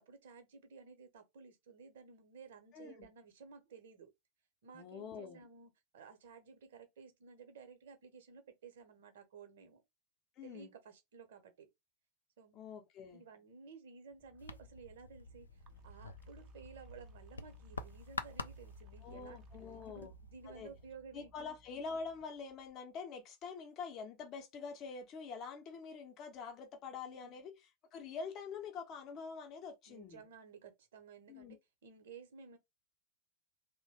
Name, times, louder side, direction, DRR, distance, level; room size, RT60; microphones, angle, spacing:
voice 1, 0.0-4.1 4.6-9.8 10.4-11.7 12.4-12.6 13.1-19.4 19.9-21.5 27.1-27.4 29.9-32.6, right 5 dB, 60° right, 0.9 m, -55 dB
voice 2, 2.7-3.1 4.7-5.4 10.4-10.7 12.5-13.2 19.0-20.2 20.5-20.7 21.1-27.5 27.9-30.2 31.3-31.6, left 5 dB, 35° left, 0.7 m, -46 dB
sound 1, 14.1-22.7, equal, 30° right, 0.5 m, -59 dB
sound 2, 14.4-20.9, left 4 dB, 75° left, 0.3 m, -49 dB
3.0 x 2.1 x 2.8 m
figure-of-eight pair, 90°, 0 cm